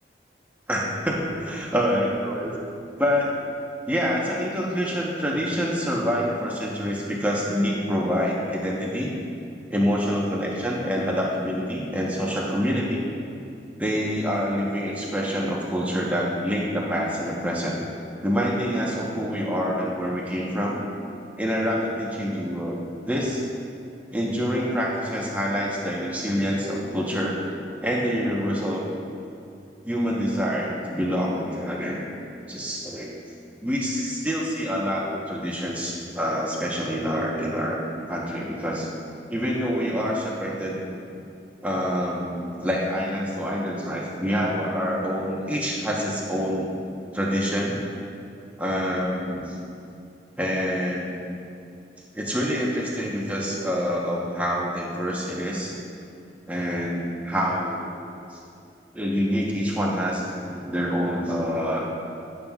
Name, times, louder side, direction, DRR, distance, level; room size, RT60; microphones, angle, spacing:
voice 1, 0.7-2.5 3.0-3.3 3.9-9.1 9.7-13.0 13.8-17.9 18.2-20.8 21.4-22.8 23.1-23.4 24.1-27.4 27.8-28.9 29.8-32.1 32.5-33.1 33.6-37.8 38.1-38.9 39.3-40.8 41.6-46.7 47.1-47.8 48.6-49.6 50.4-51.1 52.1-55.7 56.5-57.9 58.3-58.4 58.9-61.9, equal, 10° right, -4 dB, 1.0 m, -26 dB
18.0 x 7.2 x 2.4 m, 2.5 s
head